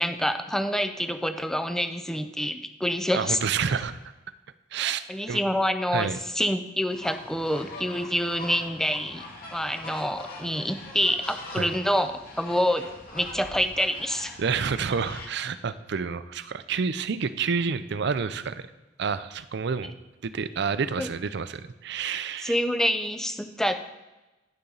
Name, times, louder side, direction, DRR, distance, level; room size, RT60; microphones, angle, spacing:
voice 1, 0.0-3.4 5.1-9.2 9.5-12.9 13.1-14.3 21.0-21.1 22.4-23.7, equal, 5° left, 8 dB, 0.5 m, -27 dB
voice 2, 3.1-4.0 4.7-5.4 5.9-6.2 11.5-11.7 14.4-18.7 19.0-19.9 20.2-22.6, right 5 dB, 65° right, 14 dB, 0.5 m, -29 dB
sound 1, 6.9-15.3, left 2 dB, 50° left, 2.0 m, -42 dB
10.0 x 6.9 x 3.9 m, 1.1 s
head